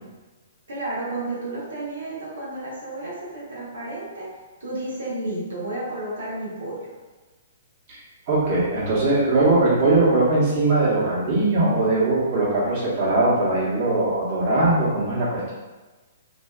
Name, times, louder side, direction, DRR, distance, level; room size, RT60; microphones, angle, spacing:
voice 1, 0.7-4.2 4.6-6.9, right 2 dB, 90° right, -7 dB, 1.0 m, -32 dB
voice 2, 7.9-15.5, right 2 dB, 40° right, -8 dB, 1.0 m, -20 dB
2.5 x 2.3 x 2.3 m, 1.2 s
hypercardioid pair, 145°, 0 cm